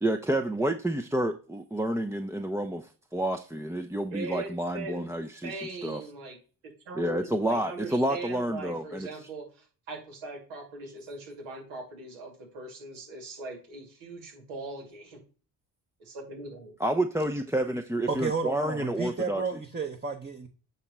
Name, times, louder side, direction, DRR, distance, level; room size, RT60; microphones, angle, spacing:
voice 1, 0.0-6.0 6.9-9.1 16.8-19.4, right 1 dB, 5° right, 0.6 m, -29 dB
voice 2, 4.1-5.1 5.4-6.4 6.9-15.2 16.0-16.7, right 2 dB, 80° right, 2.6 m, -40 dB
voice 3, 18.1-20.5, right 4 dB, 20° right, 1.1 m, -32 dB
8.3 x 3.0 x 5.5 m
hypercardioid pair, 55°, 47 cm